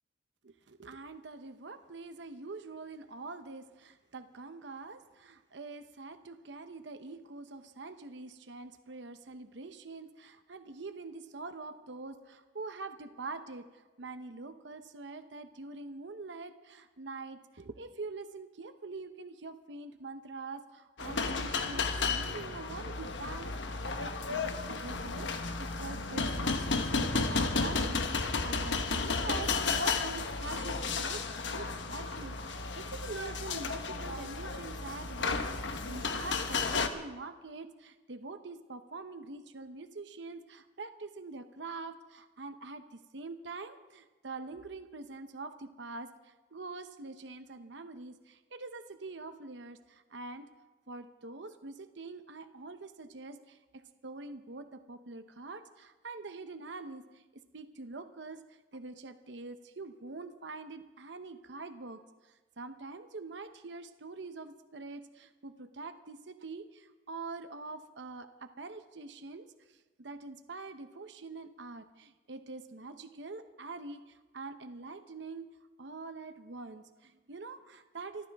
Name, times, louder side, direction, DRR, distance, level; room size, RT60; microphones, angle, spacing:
voice 1, 0.4-50.5 50.9-58.4 58.7-75.5 75.8-78.3, right 3 dB, 70° right, 9 dB, 0.9 m, -45 dB
sound 1, 21.0-36.9, left 4 dB, 75° left, 1.2 m, -33 dB
28.0 x 14.0 x 3.5 m, 1.2 s
head